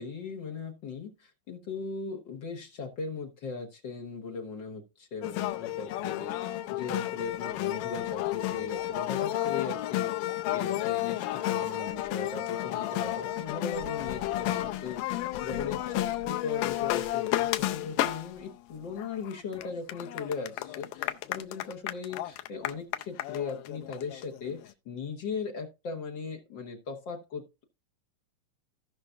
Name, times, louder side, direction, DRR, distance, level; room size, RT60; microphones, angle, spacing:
voice 1, 0.0-27.6, left 5 dB, 55° left, 3 dB, 1.3 m, -39 dB
sound 1, 5.2-18.5 19.0-24.6, left 14 dB, 85° left, 2.2 m, -32 dB
17.0 x 5.6 x 2.5 m, 0.27 s
omnidirectional pair, 3.8 m